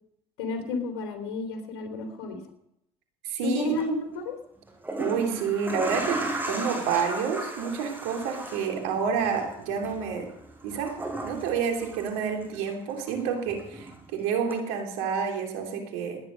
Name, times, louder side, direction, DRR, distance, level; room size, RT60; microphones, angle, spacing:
voice 1, 0.4-2.4 3.4-4.4, left 2 dB, 85° left, 5 dB, 3.4 m, -31 dB
voice 2, 3.2-3.8 5.0-10.3 10.6-16.2, right 6 dB, 80° right, 3 dB, 3.1 m, -29 dB
sound 1, 3.6-3.8 4.7-12.7 13.0-14.1 14.5-14.6, right 2 dB, 15° right, 6.9 m, -36 dB
17.0 x 10.5 x 6.4 m, 0.78 s
hypercardioid pair, 75°, 14 cm